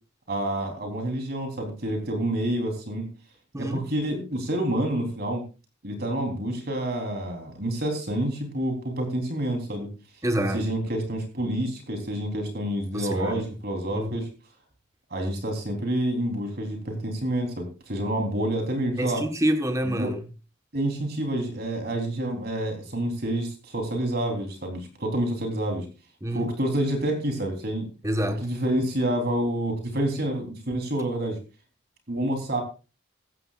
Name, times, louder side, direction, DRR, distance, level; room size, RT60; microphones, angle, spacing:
voice 1, 0.3-3.1 3.6-5.4 5.8-9.9 10.5-14.3 15.1-19.2 19.8-20.1 20.7-25.9 26.3-27.9 28.4-31.4 32.1-32.6, right 1 dB, 50° right, 3.7 m, -28 dB
voice 2, 10.2-10.6 12.9-13.5 13.9-14.2 19.0-20.2 26.2-26.5 28.0-28.5, right 1 dB, 15° right, 1.3 m, -27 dB
15.5 x 14.5 x 2.5 m
head